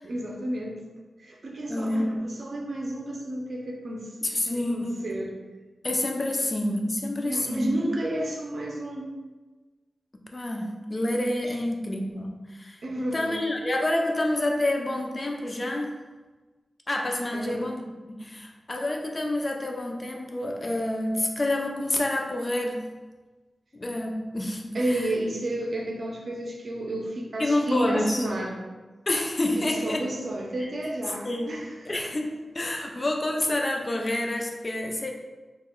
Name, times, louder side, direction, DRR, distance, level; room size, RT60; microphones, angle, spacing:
voice 1, 0.0-0.8 1.2-5.3 7.2-9.1 12.8-13.4 17.3-17.6 24.7-28.6 29.5-31.8, right 1 dB, 55° right, -1 dB, 0.6 m, -31 dB
voice 2, 1.7-2.1 4.2-4.9 5.8-7.7 10.3-12.8 13.1-15.9 16.9-22.9 23.7-25.1 27.4-28.2 29.1-30.0 31.2-31.5 31.9-35.1, left 1 dB, 30° left, 2 dB, 0.4 m, -28 dB
3.1 x 2.2 x 3.6 m, 1.3 s
wide cardioid pair, 115°, 0 cm